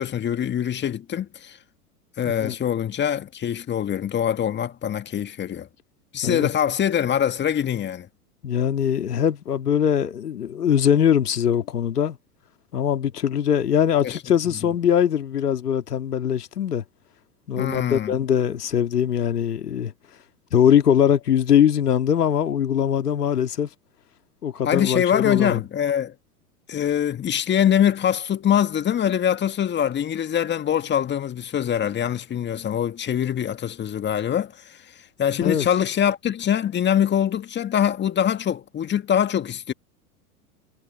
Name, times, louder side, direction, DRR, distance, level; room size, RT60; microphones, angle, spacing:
voice 1, 0.0-1.6 2.2-5.7 6.1-8.1 14.0-14.2 17.6-18.1 24.6-26.1 26.7-34.8 35.2-39.7, left 9 dB, 25° left, 1.8 m, -23 dB
voice 2, 8.4-12.2 12.7-16.8 17.5-19.9 20.5-23.7 24.4-25.6 35.4-35.7, left 9 dB, 75° left, 2.2 m, -21 dB
hypercardioid pair, 95°, 46 cm